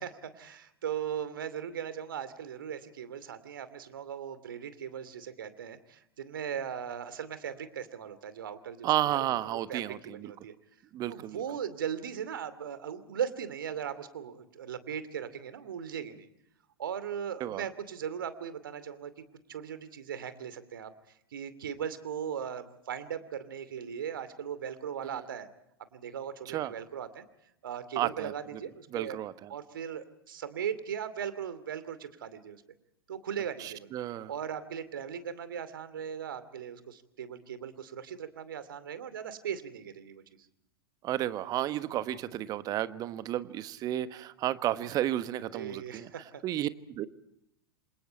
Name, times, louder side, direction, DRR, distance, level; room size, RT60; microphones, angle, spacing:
voice 1, 0.0-10.5 11.1-16.3 16.8-19.1 19.5-20.9 21.3-25.5 25.9-27.2 27.6-29.2 29.5-32.6 33.1-33.9 34.3-40.2 45.5-46.4, right 8 dB, 60° right, 13 dB, 2.6 m, -38 dB
voice 2, 8.8-10.3 10.9-11.4 17.4-17.6 25.0-25.2 26.5-26.7 27.9-28.3 28.9-29.5 33.6-34.3 41.0-46.1 46.4-47.1, right 13 dB, 30° right, 13 dB, 1.3 m, -32 dB
27.5 x 27.0 x 4.5 m, 0.78 s
figure-of-eight pair, 95°, 12 cm